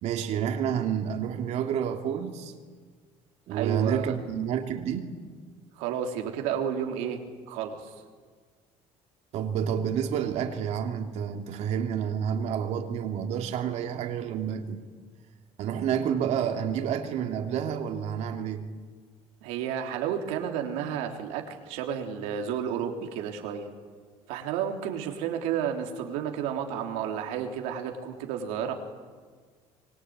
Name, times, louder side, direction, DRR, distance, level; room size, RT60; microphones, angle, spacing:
voice 1, 0.0-2.5 3.5-5.1 9.3-14.8 15.6-18.6, right 8 dB, 65° right, 3.1 m, -29 dB
voice 2, 3.5-4.2 5.8-7.2 7.5-7.9 19.4-23.7 24.3-28.7, right 8 dB, 90° right, 3.7 m, -31 dB
25.0 x 23.5 x 9.7 m
cardioid pair, 110°, 12 cm